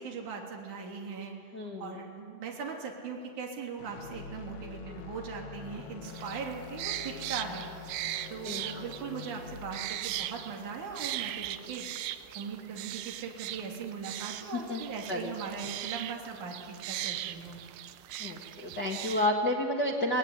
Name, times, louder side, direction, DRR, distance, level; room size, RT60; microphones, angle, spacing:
voice 1, 0.0-1.3 1.8-7.7 8.3-11.9 12.4-17.6, right 5 dB, 45° right, 0 dB, 4.0 m, -39 dB
voice 2, 1.5-2.0 8.4-8.8 14.4-15.3 18.2-20.2, left 1 dB, 75° left, -2 dB, 0.9 m, -31 dB
sound 1, 3.8-11.9, left 5 dB, 90° left, 1.6 m, -46 dB
sound 2, 6.0-19.3, right 13 dB, 80° right, 3.0 m, -39 dB
26.0 x 19.0 x 9.7 m, 2.4 s
omnidirectional pair, 5.2 m